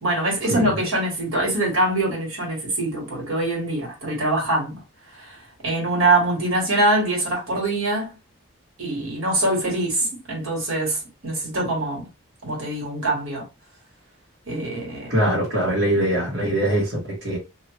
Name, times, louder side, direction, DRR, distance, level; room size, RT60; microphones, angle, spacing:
voice 1, 0.0-4.8 5.2-5.4 5.6-8.2 8.8-12.1 12.4-13.5 14.5-15.2 16.3-16.5, right 2 dB, 75° right, 1.7 m, -24 dB
voice 2, 15.1-17.4, right 1 dB, 55° right, 1.3 m, -22 dB
2.9 x 2.6 x 3.0 m
head